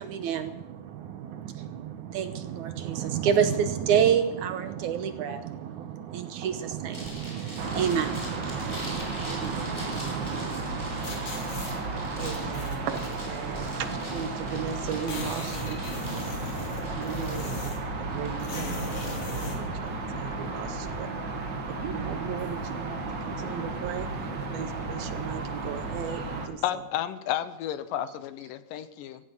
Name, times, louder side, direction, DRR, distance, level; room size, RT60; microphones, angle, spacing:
voice 1, 0.0-10.6, right 8 dB, 70° right, 9 dB, 2.1 m, -29 dB
sound 1, 6.9-20.9, equal, 5° left, 5.3 m, -45 dB
sound 2, 7.6-26.5, right 3 dB, 40° right, 1.7 m, -33 dB
sound 3, 11.0-11.7 12.3-13.2 14.1-14.2 14.4-14.5 14.8-17.9 18.4-19.6, left 2 dB, 50° left, 3.8 m, -38 dB
voice 2, 12.1-15.8 16.9-17.5 18.0-21.1 21.7-26.9 28.1-28.5, right 8 dB, 85° right, 10 dB, 3.0 m, -37 dB
voice 3, 26.6-29.2, left 11 dB, 75° left, 13 dB, 2.3 m, -32 dB
16.5 x 15.0 x 5.5 m, 0.88 s
omnidirectional pair, 4.1 m